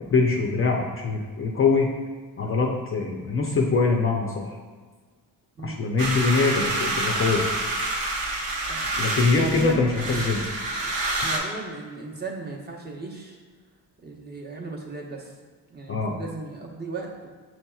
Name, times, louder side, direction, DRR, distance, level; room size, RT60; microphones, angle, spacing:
voice 1, 0.1-1.9 2.4-4.5 5.6-7.4 9.0-10.4 15.9-16.1, left 4 dB, 30° left, -1 dB, 0.5 m, -23 dB
sound 1, 6.0-11.4, right 2 dB, 80° right, 1.0 m, -28 dB
voice 2, 9.4-9.9 11.2-13.4 14.0-15.3 15.7-17.3, right 3 dB, 25° right, -2 dB, 0.9 m, -36 dB
6.2 x 2.8 x 2.3 m, 1.5 s
cardioid pair, 75°, 42 cm